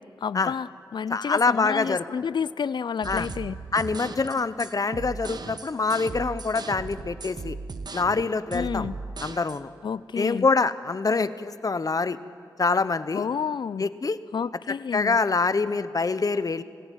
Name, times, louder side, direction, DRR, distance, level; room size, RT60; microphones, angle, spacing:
voice 1, 0.0-3.6 8.5-9.0 9.8-10.5 13.1-13.9 14.3-15.2, left 6 dB, 65° left, 19 dB, 0.5 m, -30 dB
voice 2, 1.1-2.0 3.0-3.3 3.7-7.6 7.9-8.9 9.2-9.7 10.2-12.2 12.6-13.2 13.8-14.2 14.9-16.6, left 4 dB, 45° left, 14 dB, 1.0 m, -25 dB
sound 1, 3.0-9.6, right 4 dB, 55° right, 1.1 m, -37 dB
24.5 x 16.0 x 9.3 m, 2.3 s
cardioid pair, 45°, 8 cm